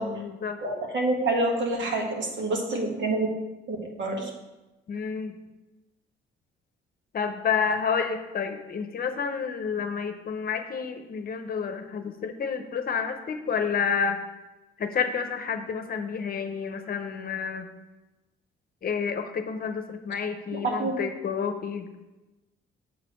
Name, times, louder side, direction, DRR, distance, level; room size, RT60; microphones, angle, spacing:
voice 1, 0.0-0.6 4.9-5.3 7.1-14.2 14.8-17.7 18.8-21.9, left 6 dB, 50° left, 7 dB, 0.8 m, -29 dB
voice 2, 0.6-3.3 3.7-4.3 20.5-20.9, right 2 dB, 65° right, 0 dB, 1.7 m, -27 dB
7.3 x 4.2 x 6.0 m, 1.1 s
cardioid pair, 90°, 20 cm